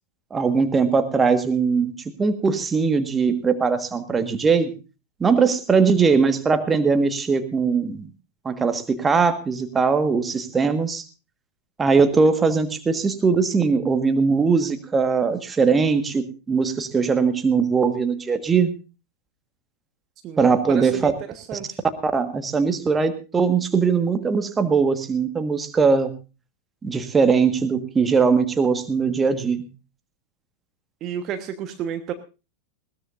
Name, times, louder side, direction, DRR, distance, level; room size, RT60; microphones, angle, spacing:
voice 1, 0.3-4.7 5.2-8.1 8.4-11.0 11.8-18.7 20.4-21.1 21.5-21.6 22.0-26.1 26.8-29.6, right 5 dB, 15° right, 9 dB, 1.5 m, -20 dB
voice 2, 20.7-21.8 31.0-32.1, right 9 dB, 35° right, 8 dB, 1.2 m, -31 dB
20.5 x 17.0 x 2.6 m, 0.31 s
figure-of-eight pair, 90°, 0 cm